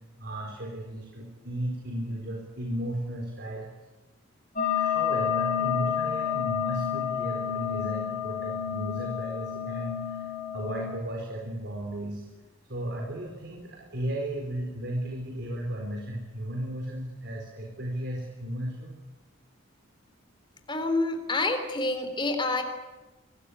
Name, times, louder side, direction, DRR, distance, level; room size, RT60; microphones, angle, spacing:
voice 1, 0.2-3.7 4.7-12.3 12.7-18.9, right 1 dB, 50° right, 1 dB, 4.3 m, -35 dB
sound 1, 4.6-10.9, left 8 dB, 35° left, 7.7 m, -29 dB
voice 2, 20.7-22.6, left 2 dB, 20° left, 6 dB, 3.5 m, -27 dB
26.0 x 20.0 x 9.9 m, 1.1 s
head